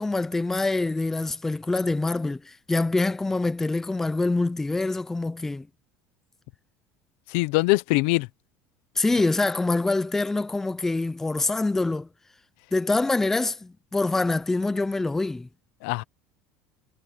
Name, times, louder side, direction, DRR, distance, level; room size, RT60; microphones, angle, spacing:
voice 1, 0.0-5.7 9.0-12.1 12.7-15.5, left 2 dB, 5° left, 0.4 m, -25 dB
voice 2, 7.3-8.3 15.8-16.0, left 23 dB, 70° left, 0.7 m, -22 dB
cardioid pair, 170°, 6 cm